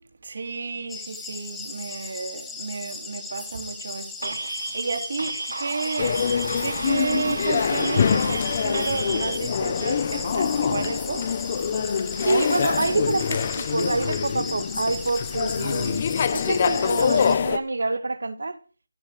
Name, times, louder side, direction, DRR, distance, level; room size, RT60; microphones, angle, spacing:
voice 1, 0.2-6.2 6.6-11.3, right 4 dB, 45° right, 3.4 m, -31 dB
sound 1, 0.9-17.4, left 4 dB, 5° left, 1.1 m, -37 dB
sound 2, 4.2-9.4, right 3 dB, 85° right, 1.6 m, -33 dB
sound 3, 6.0-17.6, left 7 dB, 25° left, 0.9 m, -25 dB
voice 2, 12.2-16.1 16.3-18.6, right 3 dB, 65° right, 2.4 m, -26 dB
16.5 x 8.6 x 6.5 m
figure-of-eight pair, 175°, 0 cm